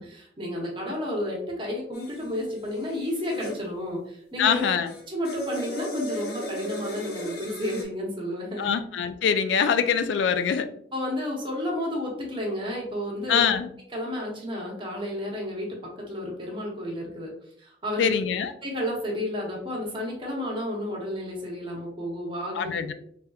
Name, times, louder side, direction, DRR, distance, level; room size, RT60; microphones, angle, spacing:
voice 1, 0.0-4.6 5.1-8.7 10.9-13.4 13.9-15.8 16.1-17.3 17.6-18.1 18.6-22.9, left 1 dB, 30° right, -2 dB, 0.9 m, -31 dB
sound 1, 1.9-3.6 4.5-7.8, equal, 60° left, 0.7 m, -36 dB
voice 2, 4.4-4.9 8.6-10.7 13.3-13.7 18.0-18.5 22.6-22.9, left 7 dB, 75° left, 10 dB, 0.3 m, -24 dB
3.3 x 2.8 x 2.3 m, 0.67 s
head